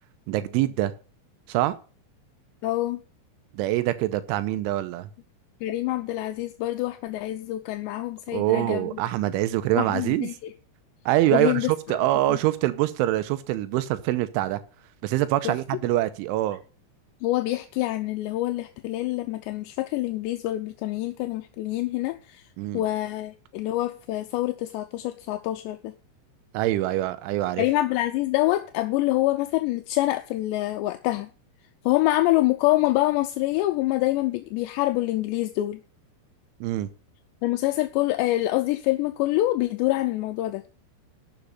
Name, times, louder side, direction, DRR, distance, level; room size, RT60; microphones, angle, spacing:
voice 1, 0.3-0.9 1.5-1.8 3.5-5.1 8.3-10.3 11.1-11.6 11.9-14.6 15.0-16.6 22.6-22.8 26.5-27.6 36.6-36.9, right 15 dB, 90° right, 3.2 m, -24 dB
voice 2, 2.6-3.0 5.6-8.9 9.8-10.5 11.3-11.7 12.3-12.4 15.4-15.5 17.2-22.4 22.7-25.9 27.6-31.3 31.9-35.8 37.4-40.6, left 17 dB, 80° left, 2.7 m, -26 dB
12.0 x 7.2 x 5.4 m
omnidirectional pair, 5.4 m